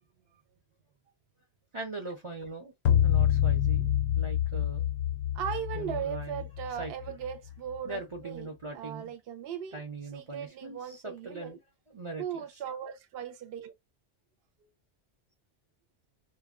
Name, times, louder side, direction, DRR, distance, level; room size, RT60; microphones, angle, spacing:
voice 1, 1.7-2.7 3.0-4.8 5.7-6.4 6.8-6.9 7.8-9.1 9.7-11.6 11.9-12.4, right 3 dB, 40° right, 0.5 m, -41 dB
sound 1, 2.9-7.3, left 10 dB, 75° left, 0.8 m, -27 dB
voice 2, 5.3-9.8 10.1-11.6 12.2-13.7, right 9 dB, 70° right, 0.8 m, -38 dB
2.2 x 2.1 x 3.5 m
omnidirectional pair, 1.1 m